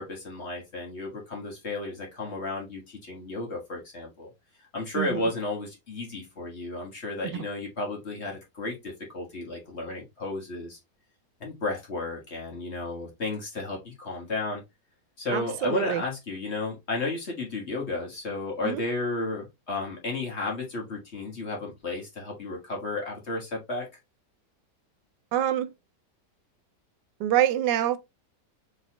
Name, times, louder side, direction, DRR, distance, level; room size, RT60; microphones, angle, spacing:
voice 1, 0.0-4.3 4.7-10.8 11.4-14.6 15.2-23.9, left 2 dB, 40° left, 1.6 m, -33 dB
voice 2, 15.3-16.0 18.6-18.8 25.3-25.7 27.2-28.0, right 12 dB, 85° right, 1.2 m, -26 dB
4.1 x 3.7 x 2.9 m
omnidirectional pair, 1.8 m